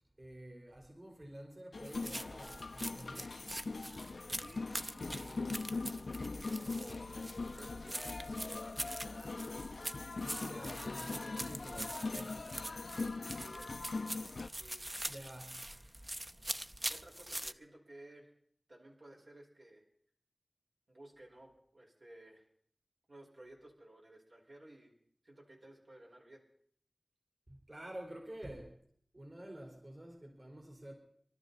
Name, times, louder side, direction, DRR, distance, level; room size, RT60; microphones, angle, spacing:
voice 1, 0.2-3.4 10.2-12.8 15.0-15.7 27.5-28.8 29.1-30.9, right 1 dB, 50° right, 0 dB, 4.1 m, -50 dB
sound 1, 1.7-14.5, left 3 dB, 90° left, 0.6 m, -41 dB
sound 2, 1.8-17.5, right 1 dB, 20° right, 0.7 m, -44 dB
voice 2, 4.3-5.6 6.3-9.5 10.5-11.1 13.3-13.9 14.6-14.9 16.9-18.3 18.7-19.8 20.9-22.5 23.1-24.9 25.2-26.4, right 1 dB, 75° right, -2 dB, 4.8 m, -56 dB
26.5 x 12.5 x 4.1 m, 0.63 s
wide cardioid pair, 45°, 0 cm